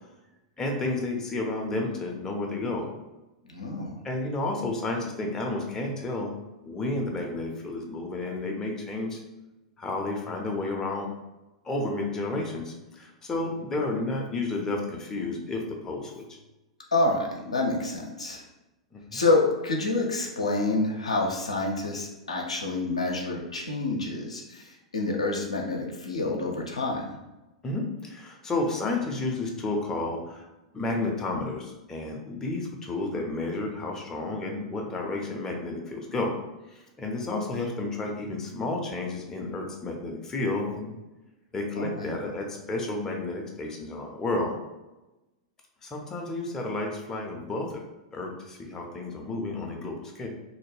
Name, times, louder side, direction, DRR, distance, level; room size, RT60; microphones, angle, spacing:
voice 1, 0.6-2.9 4.0-6.3 6.6-9.2 9.8-11.1 11.6-16.4 18.9-19.2 27.6-30.5 30.7-36.3 36.7-41.0 41.5-44.5 45.8-47.8 48.1-50.3, left 2 dB, 15° left, 0 dB, 0.5 m, -31 dB
voice 2, 3.5-4.0 16.9-18.4 19.1-27.1 41.8-42.2, left 2 dB, 80° left, 1 dB, 0.5 m, -28 dB
2.5 x 2.1 x 3.2 m, 1.0 s
figure-of-eight pair, 95°, 3 cm